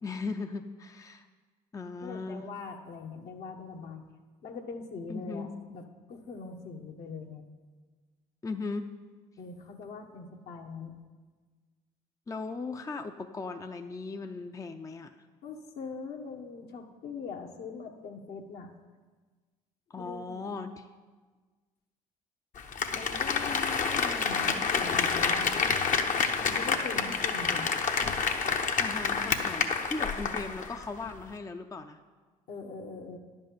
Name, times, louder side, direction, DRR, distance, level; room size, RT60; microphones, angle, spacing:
voice 1, 0.0-1.3 1.7-2.5 5.1-5.6 8.4-8.9 12.3-15.2 19.9-20.9 28.8-32.0, left 3 dB, 20° left, 6 dB, 0.5 m, -38 dB
voice 2, 2.0-4.0 4.4-5.5 5.7-5.8 6.1-7.4 9.4-10.9 15.4-18.7 20.0-20.5 22.9-25.6 26.3-27.7 30.0-30.4 32.5-33.2, left 4 dB, 65° left, 2 dB, 1.3 m, -42 dB
Applause, 22.6-30.8 31.1-31.2, left 5 dB, 50° left, 1.0 m, -28 dB
10.5 x 5.4 x 7.5 m, 1.4 s
hypercardioid pair, 65°, 17 cm